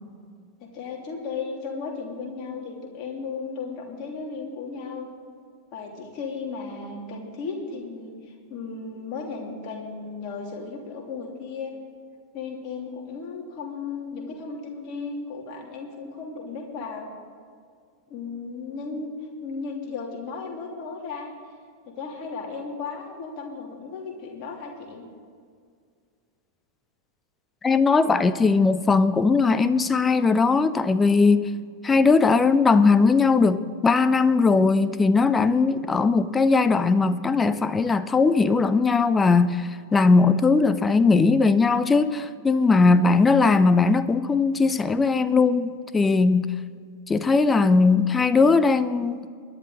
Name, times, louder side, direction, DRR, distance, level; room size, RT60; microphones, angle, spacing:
voice 1, 0.6-5.1 5.7-11.7 12.3-17.1 18.1-19.1 19.4-21.3 21.9-25.0, left 4 dB, 40° left, 2.9 m, -35 dB
voice 2, 27.6-31.5 31.8-46.5 47.1-49.3, left 4 dB, 15° left, 0.6 m, -19 dB
22.0 x 11.0 x 3.9 m
figure-of-eight pair, 90°, 0 cm